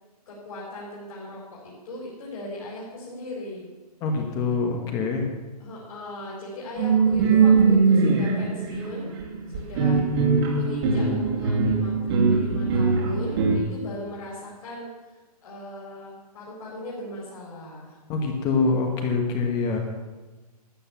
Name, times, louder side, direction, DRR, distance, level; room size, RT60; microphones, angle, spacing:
voice 1, 0.3-3.7 5.6-9.1 9.5-10.0 10.5-15.1 15.4-18.9, left 1 dB, 55° left, -5 dB, 4.4 m, -38 dB
voice 2, 4.0-5.2 18.1-19.8, left 4 dB, 20° left, 3 dB, 1.3 m, -25 dB
sound 1, 6.8-13.6, right 4 dB, 40° right, 2.5 m, -21 dB
13.0 x 8.3 x 7.2 m, 1.2 s
hypercardioid pair, 165°, 20 cm